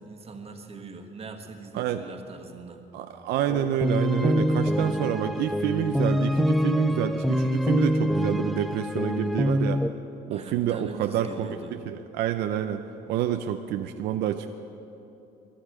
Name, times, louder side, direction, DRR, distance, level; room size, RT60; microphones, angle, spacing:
voice 1, 0.0-2.8 10.3-11.8, right 4 dB, 35° right, 4 dB, 1.5 m, -41 dB
voice 2, 2.9-9.8 10.3-14.6, right 10 dB, 80° right, 7 dB, 0.6 m, -28 dB
sound 1, 3.5-9.9, equal, ahead, 0.4 m, -25 dB
23.0 x 10.5 x 4.9 m, 3.0 s
cardioid pair, 110°, 17 cm